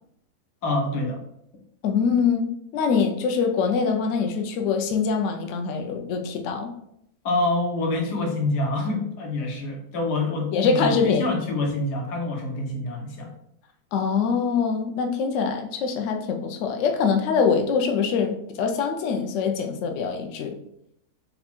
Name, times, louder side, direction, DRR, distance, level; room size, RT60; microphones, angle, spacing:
voice 1, 0.6-1.2 7.2-13.3, left 2 dB, 90° left, 1 dB, 1.5 m, -26 dB
voice 2, 1.8-6.7 10.5-11.3 13.9-20.6, left 5 dB, 65° left, 4 dB, 0.8 m, -24 dB
4.1 x 2.2 x 4.3 m, 0.75 s
omnidirectional pair, 1.7 m